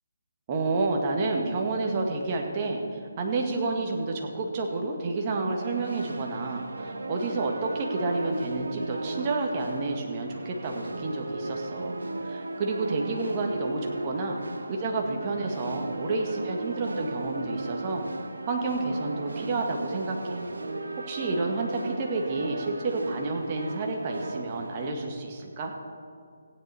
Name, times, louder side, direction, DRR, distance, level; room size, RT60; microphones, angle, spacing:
voice 1, 0.5-12.0 12.2-14.4 14.7-18.0 18.5-20.4 21.0-25.7, right 3 dB, 30° right, 1 dB, 1.7 m, -30 dB
sound 1, 5.5-24.9, right 2 dB, 70° right, 1.1 m, -36 dB
15.5 x 9.4 x 4.3 m, 2.3 s
figure-of-eight pair, 150°, 0 cm